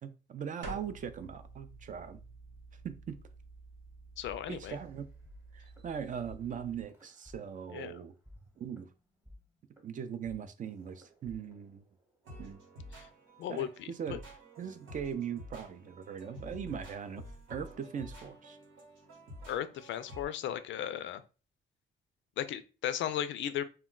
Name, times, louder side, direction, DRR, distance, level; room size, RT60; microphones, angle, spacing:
voice 1, 0.0-2.2 2.8-3.2 4.5-5.1 5.5-8.1 8.6-8.9 9.8-11.8 12.4-12.6 13.5-14.2 14.6-17.2 17.5-18.6, right 7 dB, 40° right, 0.4 m, -40 dB
sound 1, 0.6-6.8, right 2 dB, 65° right, 0.8 m, -50 dB
voice 2, 4.2-4.8 7.7-7.9 13.4-14.2 19.5-21.2 22.4-23.6, left 10 dB, 70° left, 0.4 m, -36 dB
sound 2, 4.3-5.4 5.6-5.9 6.3-6.4 6.9-7.9 8.3-12.3, left 1 dB, 10° right, 0.9 m, -56 dB
sound 3, 12.2-20.3, equal, 85° right, 1.1 m, -50 dB
2.2 x 2.2 x 3.7 m
cardioid pair, 90°, 20 cm